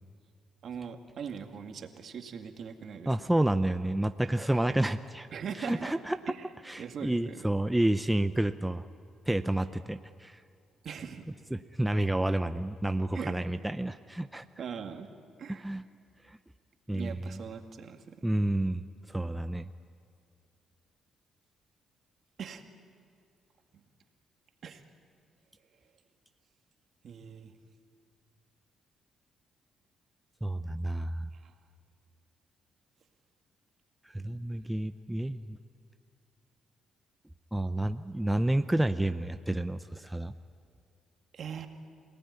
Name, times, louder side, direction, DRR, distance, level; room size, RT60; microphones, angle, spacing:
voice 1, 0.6-3.1 5.3-5.9 6.3-6.5 6.8-7.5 10.8-11.2 13.1-13.4 14.6-15.1 15.4-15.7 16.9-18.3 22.4-22.6 24.6-24.8 27.0-27.5 31.4-31.5 41.3-41.7, right 7 dB, 60° right, 5 dB, 2.2 m, -40 dB
voice 2, 3.1-5.3 5.6-6.3 6.6-8.8 9.3-10.4 11.5-14.4 15.5-15.8 16.3-16.4 16.9-17.4 18.2-19.7 30.4-31.3 34.1-35.6 37.5-40.3, right 1 dB, 10° right, 10 dB, 0.7 m, -30 dB
27.5 x 18.5 x 9.7 m, 2.4 s
cardioid pair, 90°, 0 cm